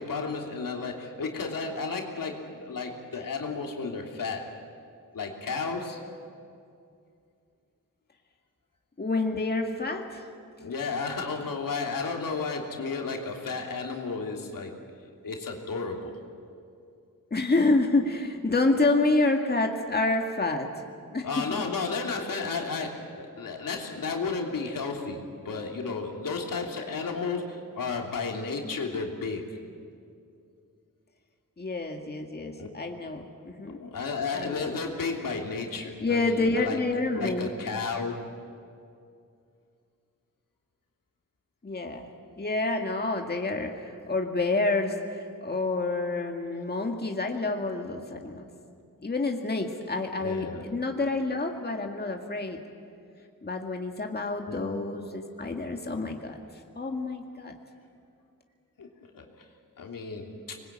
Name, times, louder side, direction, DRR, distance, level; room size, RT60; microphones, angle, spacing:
voice 1, 0.0-4.5 5.1-6.1 10.6-14.8 15.2-16.3 21.2-29.6 32.6-32.7 33.7-36.8 37.1-38.1 50.2-50.6 54.5-54.6 58.8-58.9 59.1-59.3 59.8-60.6, left 4 dB, 85° left, 1 dB, 3.1 m, -33 dB
voice 2, 9.0-10.2 17.3-20.8 21.1-21.6 31.6-33.8 34.3-34.7 36.0-37.5 41.6-42.1 42.4-48.5 49.0-52.6 53.4-56.4 56.7-57.5, left 2 dB, 30° left, 3 dB, 2.0 m, -28 dB
25.5 x 21.5 x 8.8 m, 2.4 s
wide cardioid pair, 95°, 33 cm